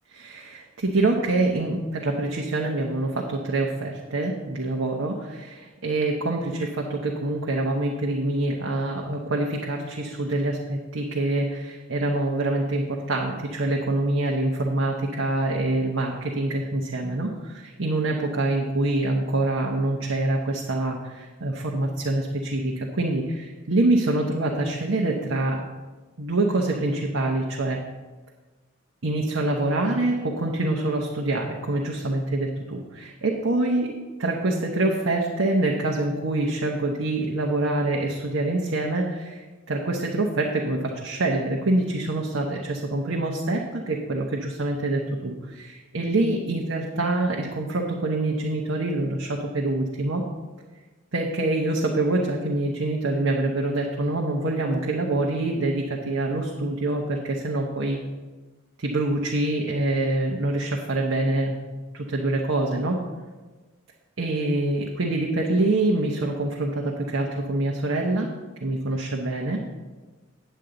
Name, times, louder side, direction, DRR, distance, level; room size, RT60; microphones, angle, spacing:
voice 1, 0.1-25.6 26.2-27.8 29.0-33.9 34.2-50.2 51.1-58.0 58.8-61.6 61.9-63.0 64.2-68.3 68.6-69.6, right 2 dB, 80° right, -1 dB, 0.9 m, -25 dB
9.0 x 8.5 x 3.9 m, 1.3 s
head